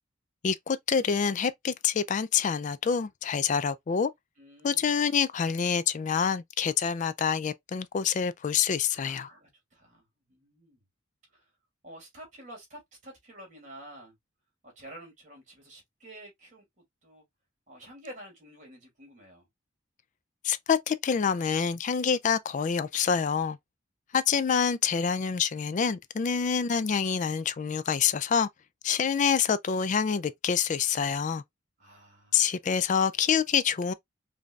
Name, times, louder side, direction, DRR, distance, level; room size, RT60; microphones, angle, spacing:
voice 1, 0.4-4.1 4.6-9.3 20.4-23.6 24.1-28.5 28.8-31.4 32.3-33.9, left 7 dB, 35° left, 0.3 m, -26 dB
voice 2, 4.4-4.9 8.9-10.8 11.3-11.5 11.8-14.1 14.6-17.2 17.7-19.5 31.8-32.5, right 1 dB, 40° right, 2.4 m, -49 dB
5.1 x 2.7 x 2.3 m
head